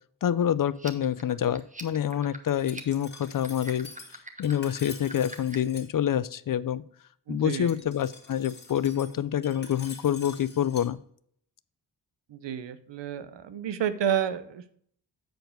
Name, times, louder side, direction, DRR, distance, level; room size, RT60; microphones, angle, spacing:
voice 1, 0.2-3.9 4.4-6.8 7.3-11.0, left 10 dB, 50° left, 17 dB, 0.5 m, -27 dB
sound 1, 0.7-5.8, right 1 dB, 15° right, 1.2 m, -44 dB
Glass, 2.5-5.9 7.5-10.9, left 3 dB, 25° left, 1.8 m, -47 dB
voice 2, 7.3-7.8 12.3-14.8, right 9 dB, 75° right, 13 dB, 0.8 m, -30 dB
7.9 x 4.6 x 5.1 m, 0.64 s
cardioid pair, 70°, 44 cm